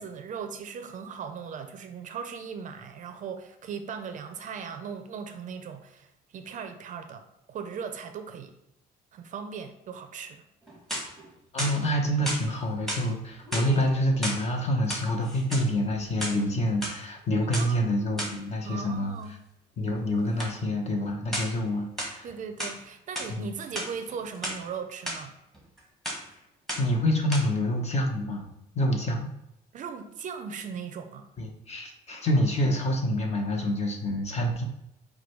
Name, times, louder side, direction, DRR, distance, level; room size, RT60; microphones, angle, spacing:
voice 1, 0.0-6.1 6.3-8.5 9.1-10.4 17.4-17.9 18.6-19.3 22.2-25.4 29.7-31.3, right 6 dB, 50° right, 7 dB, 0.5 m, -38 dB
sound 1, 10.6-11.2 11.6-12.4 12.9-13.1 13.4-14.4 14.8-15.7 16.1-16.9 17.5-17.7 18.2-18.4 20.4-20.6 21.3-21.6 22.0-22.8 23.1-23.3 23.6-24.6 25.1-25.2 25.5-25.8 26.0-26.3 26.7-27.0 27.3-27.4, equal, ahead, 1.2 m, -34 dB
voice 2, 11.5-19.1 19.8-22.3 23.3-23.5 26.8-28.4 28.7-29.3 31.4-34.6, left 1 dB, 40° left, 2 dB, 0.9 m, -27 dB
4.7 x 2.3 x 4.5 m, 0.83 s
cardioid pair, 110°, 17 cm